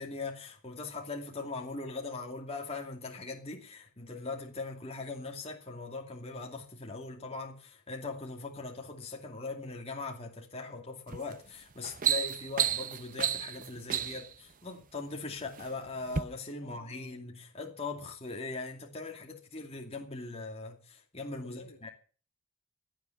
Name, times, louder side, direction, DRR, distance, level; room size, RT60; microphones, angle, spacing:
voice 1, 0.0-21.9, left 3 dB, 30° left, 2.5 m, -40 dB
sound 1, 11.1-11.3 11.7-14.3 15.1-15.7 16.1-16.2, right 9 dB, 40° right, 0.7 m, -31 dB
voice 2, 16.6-17.2 21.4-21.9, left 2 dB, 60° left, 1.8 m, -53 dB
16.5 x 10.5 x 7.0 m
head